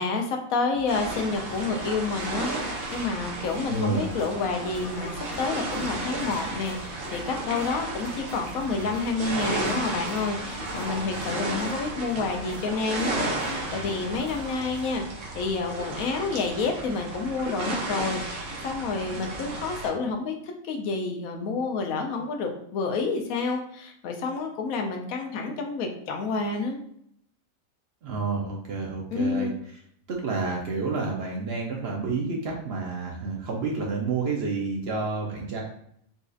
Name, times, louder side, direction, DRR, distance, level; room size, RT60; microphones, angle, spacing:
voice 1, 0.0-26.8 29.1-29.6, left 4 dB, 90° left, 3 dB, 1.0 m, -29 dB
sound 1, 0.7-14.9, left 2 dB, 55° left, 0.4 m, -45 dB
sound 2, 0.9-19.9, right 2 dB, 80° right, 1.2 m, -33 dB
voice 2, 3.7-4.1 28.0-29.5 30.1-35.6, right 4 dB, 60° right, -1 dB, 0.7 m, -29 dB
4.0 x 2.4 x 2.5 m, 0.70 s
omnidirectional pair, 1.4 m